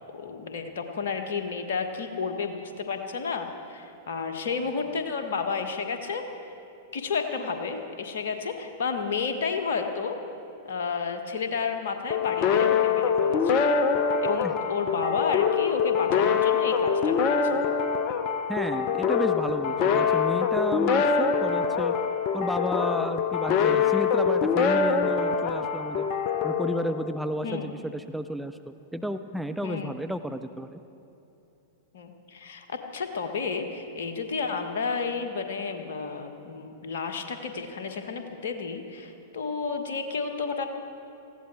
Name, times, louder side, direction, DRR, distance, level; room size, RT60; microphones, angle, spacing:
voice 1, 0.1-6.2 6.9-10.2 10.6-13.6 14.2-17.6 27.4-27.7 29.6-29.9 31.9-40.7, left 5 dB, 60° left, 6 dB, 1.4 m, -31 dB
sound 1, 12.1-27.5, left 6 dB, 40° left, 0.9 m, -24 dB
voice 2, 18.5-21.9 22.3-26.1 26.4-30.8, equal, ahead, 8 dB, 0.5 m, -32 dB
19.0 x 15.5 x 4.5 m, 2.8 s
figure-of-eight pair, 100°, 0 cm